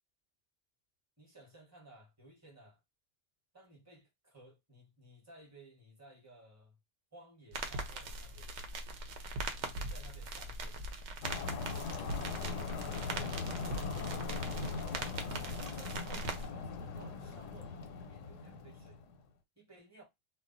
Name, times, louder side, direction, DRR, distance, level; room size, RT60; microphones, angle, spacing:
voice 1, 1.2-2.8 3.5-6.8 7.1-8.5 9.5-10.8 11.6-14.8 15.7-19.0 19.6-20.0, right 2 dB, 15° right, 0.9 m, -58 dB
sound 1, 7.5-16.5, right 2 dB, 70° right, 0.9 m, -41 dB
sound 2, 11.2-19.2, left 4 dB, 90° left, 0.9 m, -40 dB
2.3 x 2.2 x 3.7 m
omnidirectional pair, 1.3 m